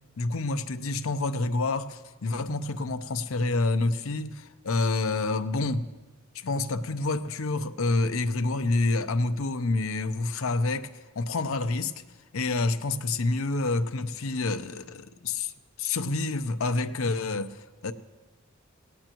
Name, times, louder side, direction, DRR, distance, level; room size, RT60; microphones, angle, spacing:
voice 1, 0.2-5.9 6.3-10.9 11.2-11.9 12.3-15.5 15.8-17.9, left 3 dB, 70° left, 11 dB, 0.7 m, -28 dB
18.0 x 17.5 x 3.0 m, 1.2 s
head